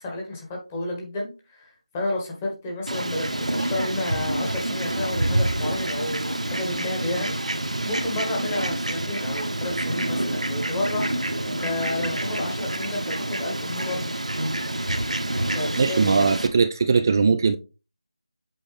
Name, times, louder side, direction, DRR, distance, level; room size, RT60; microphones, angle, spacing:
voice 1, 0.0-14.1 15.5-16.3, left 1 dB, 15° left, 1.4 m, -31 dB
Fowl, 2.9-16.5, right 1 dB, 85° right, 1.3 m, -27 dB
voice 2, 15.8-17.6, right 5 dB, 30° right, 0.4 m, -20 dB
7.8 x 4.1 x 3.4 m
figure-of-eight pair, 165°, 4 cm